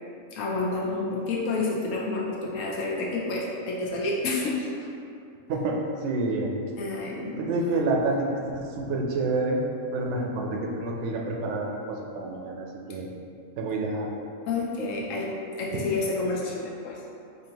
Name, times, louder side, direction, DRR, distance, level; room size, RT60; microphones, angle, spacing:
voice 1, 0.3-4.9 6.8-7.5 14.5-15.3 15.6-17.0, left 3 dB, 75° left, -3 dB, 0.9 m, -29 dB
voice 2, 5.5-6.5 7.4-9.6 9.9-13.1 13.6-14.2, right 2 dB, 65° right, 0 dB, 0.8 m, -28 dB
4.4 x 2.8 x 2.8 m, 2.4 s
omnidirectional pair, 1.5 m